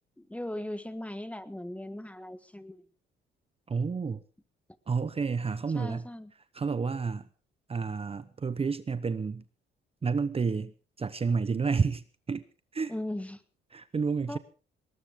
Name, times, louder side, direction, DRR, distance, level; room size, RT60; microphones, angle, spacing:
voice 1, 0.2-2.8 5.7-6.3 12.9-13.4 14.3-14.4, left 1 dB, 5° left, 1.5 m, -38 dB
voice 2, 3.7-4.2 4.9-6.1 6.5-7.2 7.7-9.4 10.0-12.4 12.7-12.9 13.7-14.4, right 5 dB, 30° right, 0.9 m, -30 dB
20.0 x 19.0 x 3.8 m
cardioid pair, 90°, 20 cm